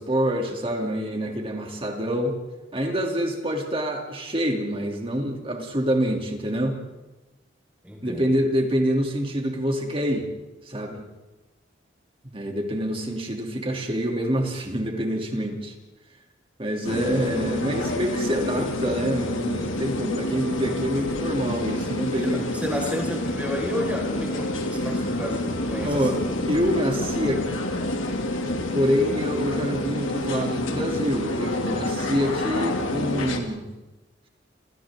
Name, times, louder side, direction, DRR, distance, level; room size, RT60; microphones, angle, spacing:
voice 1, 0.0-2.4 2.7-6.8 8.0-10.3 10.6-11.0 12.3-15.7 16.6-22.5 25.8-26.2 26.5-27.4 28.7-33.7, equal, 30° right, 2 dB, 2.9 m, -26 dB
voice 2, 7.8-8.2 16.9-17.2 22.2-26.4, equal, 5° right, 0 dB, 5.0 m, -32 dB
sound 1, 16.8-33.4, left 2 dB, 90° left, 2.5 m, -28 dB
28.5 x 28.0 x 3.8 m, 1.1 s
head